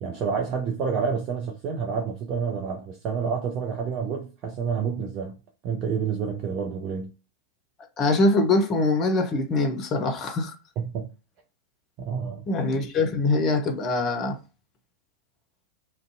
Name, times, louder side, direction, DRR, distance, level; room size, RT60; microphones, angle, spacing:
voice 1, 0.0-5.4 5.6-7.1 10.8-11.1 12.0-12.4, right 6 dB, 35° right, 0.5 m, -29 dB
voice 2, 8.0-10.5 12.5-14.4, left 2 dB, 30° left, 0.6 m, -23 dB
2.5 x 2.1 x 2.5 m
figure-of-eight pair, 90°, 0 cm